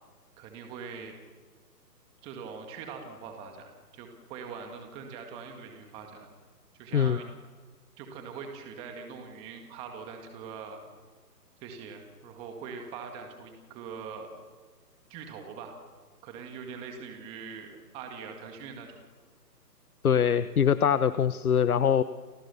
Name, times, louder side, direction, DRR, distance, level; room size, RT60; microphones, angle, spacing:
voice 1, 0.4-1.1 2.2-3.7 3.9-6.3 6.8-7.3 8.0-10.8 11.6-14.3 15.1-15.8 16.2-17.7 17.9-18.9, right 6 dB, 10° right, 4 dB, 1.9 m, -42 dB
voice 2, 20.0-22.0, left 8 dB, 60° left, 13 dB, 1.2 m, -23 dB
29.5 x 27.0 x 7.0 m, 1.4 s
hypercardioid pair, 160°, 49 cm